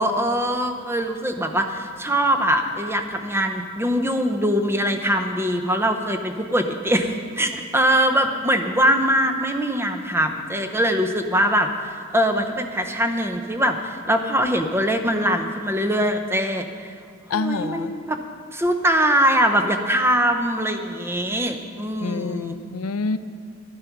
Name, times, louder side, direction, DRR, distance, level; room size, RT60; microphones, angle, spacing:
voice 1, 0.0-17.0 17.3-18.2 18.5-22.6, equal, 10° right, 5 dB, 0.6 m, -22 dB
voice 2, 17.3-17.9 22.0-23.2, left 4 dB, 85° left, 11 dB, 0.5 m, -27 dB
11.5 x 11.0 x 5.9 m, 2.1 s
head